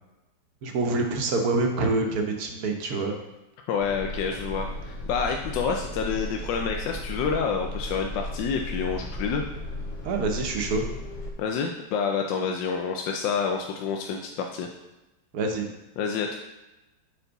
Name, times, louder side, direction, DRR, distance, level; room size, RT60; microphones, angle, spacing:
voice 1, 0.6-3.2 10.0-10.8 15.3-15.7, right 3 dB, 60° right, 3 dB, 1.3 m, -26 dB
voice 2, 3.7-9.4 11.4-14.7 16.0-16.4, left 6 dB, 85° left, 2 dB, 1.3 m, -28 dB
sound 1, 3.8-11.3, left 1 dB, 50° left, 1.1 m, -35 dB
6.9 x 4.3 x 3.9 m, 1.0 s
omnidirectional pair, 2.0 m